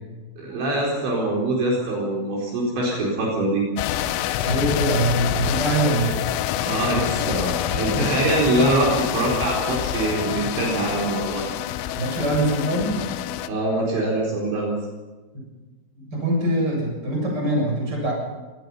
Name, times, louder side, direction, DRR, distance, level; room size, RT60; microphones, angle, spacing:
voice 1, 0.4-3.6 6.6-11.4 13.5-14.8, right 2 dB, 60° right, -3 dB, 6.4 m, -23 dB
sound 1, 3.8-13.5, left 12 dB, 85° left, 3.6 m, -27 dB
voice 2, 4.4-6.2 7.9-8.2 12.0-13.0 16.0-18.1, right 1 dB, 20° right, 0 dB, 7.6 m, -23 dB
24.5 x 19.0 x 5.7 m, 1.2 s
omnidirectional pair, 6.0 m